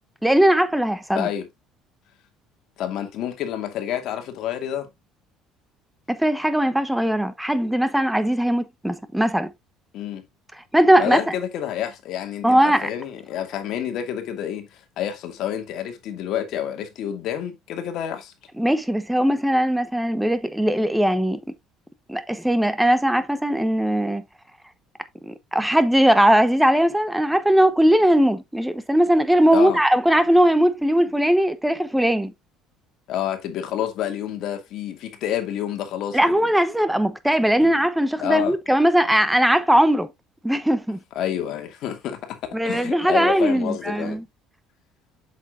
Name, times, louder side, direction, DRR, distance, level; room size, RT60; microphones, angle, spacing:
voice 1, 0.2-1.3 6.1-9.5 10.7-11.3 12.4-12.9 18.6-21.4 22.1-24.2 25.2-32.3 36.1-40.1 40.4-41.0 42.5-44.2, right 1 dB, 5° right, 1.1 m, -19 dB
voice 2, 1.1-1.5 2.8-4.9 9.9-10.2 11.0-18.3 29.5-29.8 33.1-36.4 37.6-37.7 38.2-38.6 41.2-42.4 42.6-44.2, left 10 dB, 65° left, 2.3 m, -28 dB
8.2 x 7.0 x 2.6 m
cardioid pair, 110°, 0 cm